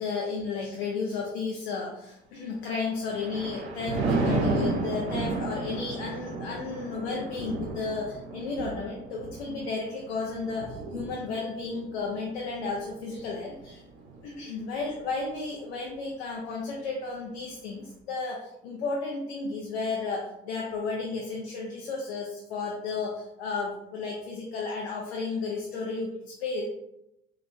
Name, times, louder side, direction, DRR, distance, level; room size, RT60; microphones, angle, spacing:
voice 1, 0.0-13.8 14.2-26.6, left 4 dB, 80° left, -2 dB, 0.6 m, -33 dB
Thunder, 2.8-14.3 14.7-15.1, right 3 dB, 85° right, 0.6 m, -33 dB
3.6 x 2.3 x 2.7 m, 0.84 s
hypercardioid pair, 55°, 32 cm